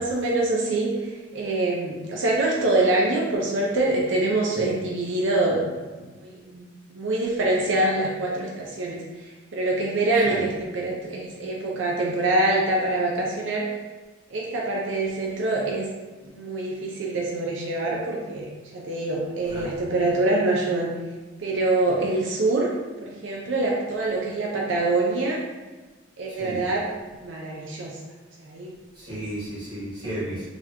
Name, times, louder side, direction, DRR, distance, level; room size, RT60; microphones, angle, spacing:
voice 1, 0.0-5.9 6.2-9.0 9.5-13.7 14.3-15.9 16.2-20.9 21.4-22.7 23.0-25.4 26.2-26.9 27.1-28.0 28.4-28.7 29.1-29.2, right 2 dB, 75° right, -3 dB, 0.5 m, -25 dB
voice 2, 26.3-26.6 28.9-30.5, right 1 dB, 25° right, -10 dB, 1.4 m, -33 dB
4.0 x 2.9 x 2.7 m, 1.2 s
head